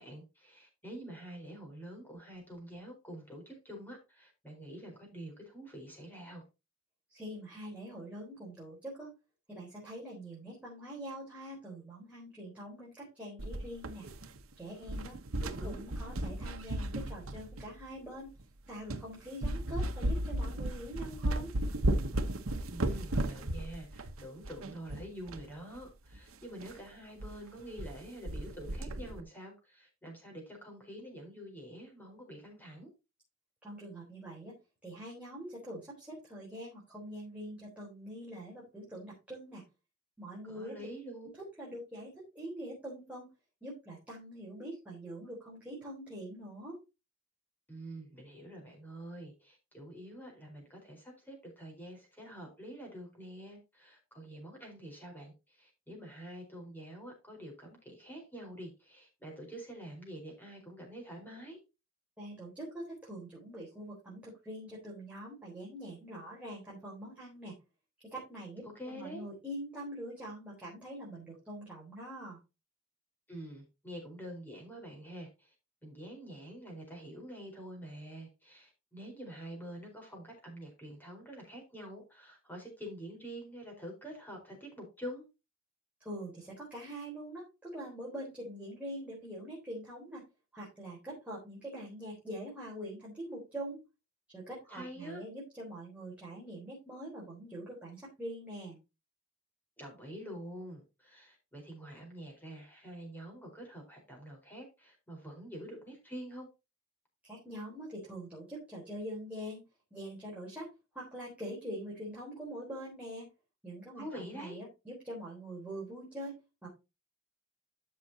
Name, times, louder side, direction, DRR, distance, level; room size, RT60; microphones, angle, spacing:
voice 1, 0.0-6.4 15.5-15.8 22.7-32.9 40.4-41.3 47.7-61.6 68.6-69.2 73.3-75.5 75.8-85.2 94.7-95.2 99.8-106.5 114.0-114.6, right 1 dB, 10° left, 0 dB, 4.5 m, -46 dB
voice 2, 7.1-9.1 9.5-14.1 14.6-18.3 18.7-21.5 33.6-34.5 34.8-39.6 40.2-40.8 41.2-41.3 41.6-43.3 43.6-46.8 62.2-67.6 68.0-72.4 86.0-90.2 90.5-93.8 94.3-98.8 107.2-109.6 109.9-110.7 110.9-113.3 113.6-116.7, right 1 dB, 5° right, -6 dB, 4.0 m, -44 dB
sound 1, 13.4-14.5 14.8-17.8 18.4-18.5 18.9-19.1 19.4-25.5 25.7-25.8 26.1-26.2 26.6-26.8 27.2-27.3 27.6-28.0 28.3-29.2, right 1 dB, 85° right, 1.1 m, -35 dB
13.0 x 5.9 x 2.8 m, 0.26 s
head